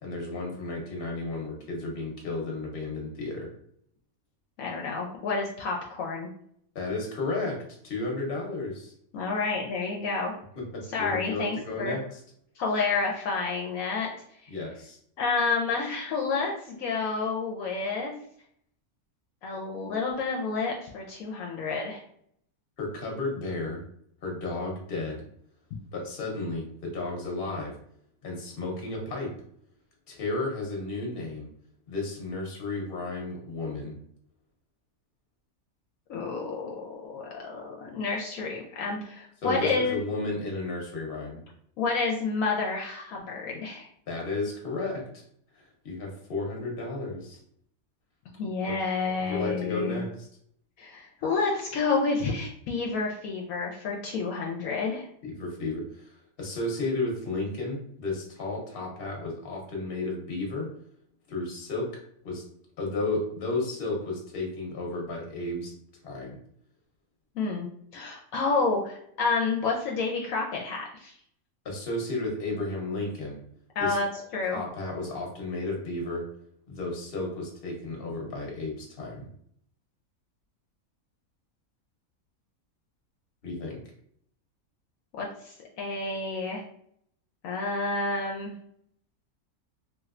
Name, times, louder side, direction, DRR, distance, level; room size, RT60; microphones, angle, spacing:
voice 1, 0.0-3.5 6.7-8.9 10.7-12.2 14.5-15.0 22.8-23.8 24.2-25.2 25.9-27.7 28.2-29.3 30.1-31.5 31.9-33.9 39.4-41.4 44.1-45.2 45.5-47.4 48.6-48.7 49.2-50.3 55.2-60.7 61.3-61.9 62.2-62.4 62.8-65.7 66.0-66.4 71.6-73.4 73.8-74.0 74.5-76.2 76.7-79.3 83.4-83.8, left 2 dB, 45° left, 0 dB, 1.0 m, -33 dB
voice 2, 4.6-6.3 9.1-10.4 10.9-12.0 12.6-14.1 14.4-14.5 15.2-18.1 19.4-22.0 36.1-40.0 41.8-43.9 48.4-50.0 50.8-55.1 67.4-67.7 67.9-71.1 73.8-74.1 74.3-74.6 85.2-86.6 87.4-88.5, left 4 dB, 75° left, -1 dB, 1.0 m, -29 dB
3.1 x 2.9 x 2.4 m, 0.66 s
omnidirectional pair, 1.5 m